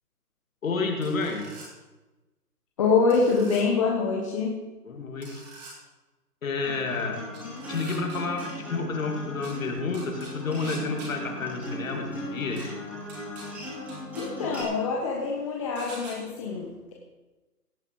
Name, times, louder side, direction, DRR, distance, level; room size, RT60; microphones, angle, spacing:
voice 1, 0.6-1.5 4.9-5.4 6.4-7.2 7.7-12.8, left 4 dB, 55° left, 3 dB, 2.8 m, -30 dB
sound 1, 1.0-1.7 3.1-3.6 5.2-5.7 7.3-8.4 9.4-9.5 9.9-11.1 12.6-12.7 13.1-13.4 13.9-14.2 15.8-16.1, right 3 dB, 25° right, 4.3 m, -44 dB
voice 2, 2.8-4.6 14.2-16.9, left 4 dB, 20° left, -3 dB, 1.2 m, -25 dB
Acoustic guitar, 6.6-14.6, left 1 dB, 5° right, 3.8 m, -38 dB
17.0 x 9.8 x 4.7 m, 1.1 s
hypercardioid pair, 165°, 48 cm